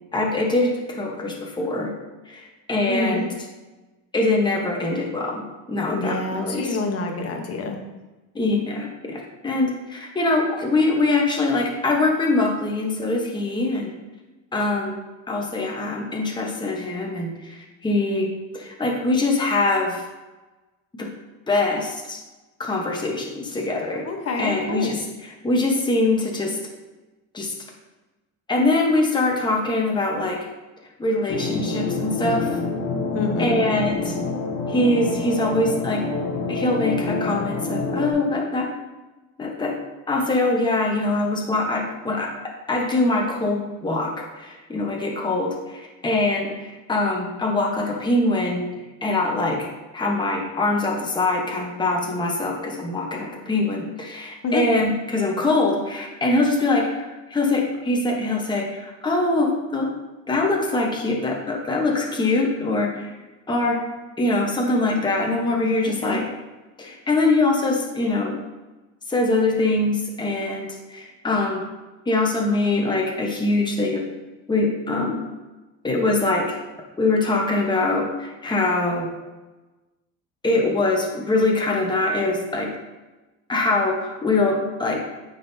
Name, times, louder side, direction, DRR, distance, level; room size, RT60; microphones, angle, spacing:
voice 1, 0.1-1.9 2.3-3.3 4.1-6.8 8.3-13.9 14.5-15.0 15.3-20.0 20.9-21.1 21.5-22.2 22.6-24.0 24.4-25.0 25.4-26.6 27.3-27.5 28.5-30.4 31.0-32.6 33.4-34.1 34.7-36.0 36.5-38.7 39.4-39.7 40.1-42.3 42.7-48.7 49.0-49.7 49.9-59.9 60.3-63.1 63.5-63.8 64.2-66.3 66.8-68.4 69.1-71.6 72.1-74.0 74.5-75.2 75.8-76.4 77.0-79.1 80.4-82.7 83.5-85.0, left 2 dB, 10° left, -1 dB, 1.0 m, -23 dB
voice 2, 2.9-3.3 5.9-7.8 24.0-24.9 33.1-33.6 54.4-54.6 65.8-66.2, left 3 dB, 40° left, 3 dB, 1.0 m, -27 dB
sound 1, 31.3-38.1, left 3 dB, 65° left, 1.2 m, -27 dB
9.1 x 4.0 x 2.7 m, 1.1 s
cardioid pair, 120°, 38 cm